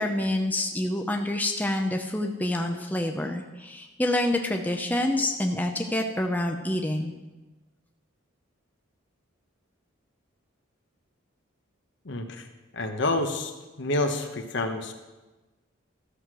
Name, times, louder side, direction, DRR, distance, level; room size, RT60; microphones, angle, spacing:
voice 1, 0.0-7.1, left 1 dB, 10° left, 3 dB, 0.6 m, -27 dB
voice 2, 12.0-12.5 12.7-13.5 13.8-14.9, left 2 dB, 60° left, 5 dB, 1.1 m, -28 dB
13.5 x 6.5 x 6.1 m, 1.2 s
head